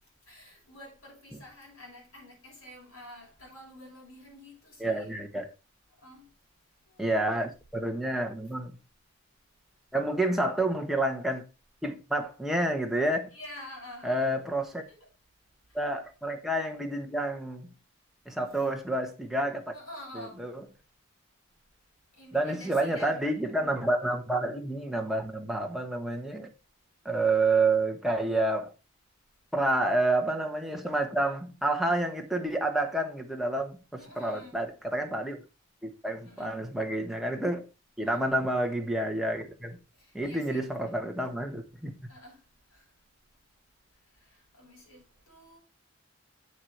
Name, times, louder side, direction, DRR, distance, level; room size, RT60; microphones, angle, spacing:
voice 1, 0.3-5.1 6.0-6.3 6.9-7.4 13.3-14.4 14.9-15.1 15.7-15.8 18.4-18.7 19.7-20.5 22.1-23.2 34.0-34.6 36.2-36.5 38.0-38.3 39.9-40.8 42.1-42.4 42.7-42.9 44.1-45.6, left 1 dB, 80° left, 6.6 m, -49 dB
voice 2, 4.8-5.5 7.0-8.7 9.9-11.5 11.8-13.3 14.0-14.8 15.7-17.7 18.2-19.7 20.1-20.6 22.3-26.5 27.0-28.7 29.5-35.4 35.8-37.7 38.0-39.8 40.1-41.9, right 2 dB, ahead, 1.4 m, -29 dB
8.2 x 7.3 x 4.7 m
head